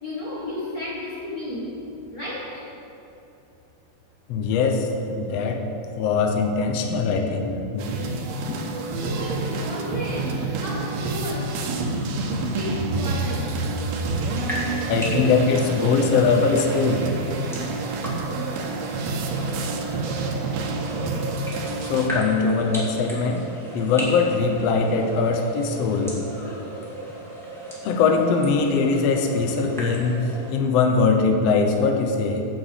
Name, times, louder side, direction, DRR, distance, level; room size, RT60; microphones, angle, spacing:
voice 1, 0.0-2.7 8.6-12.2 12.5-14.2 14.8-14.9, left 2 dB, 40° left, -7 dB, 1.4 m, -34 dB
voice 2, 4.3-4.9 5.1-5.6 6.0-7.9 14.9-17.0 21.8-23.4 23.7-26.2 27.8-30.2 30.5-32.4, left 4 dB, 80° left, 4 dB, 1.4 m, -21 dB
sound 1, 7.8-22.1, right 3 dB, 90° right, 2.9 m, -28 dB
sound 2, 14.3-30.5, right 1 dB, ahead, 1.9 m, -35 dB
8.8 x 7.5 x 8.2 m, 2.8 s
omnidirectional pair, 4.2 m